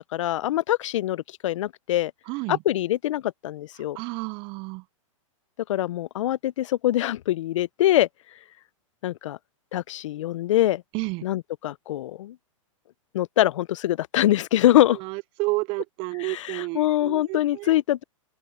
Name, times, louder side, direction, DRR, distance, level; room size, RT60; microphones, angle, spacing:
voice 1, 0.1-2.1 2.5-4.0 5.7-8.1 9.0-9.4 9.7-10.8 11.2-12.4 13.1-15.0 16.2-18.0, left 13 dB, 65° left, 0.7 m, -24 dB
voice 2, 2.3-2.6 4.0-4.8 10.9-11.2 15.0-17.8, right 27 dB, 30° right, 0.4 m, -31 dB
open air
hypercardioid pair, 125°, 17 cm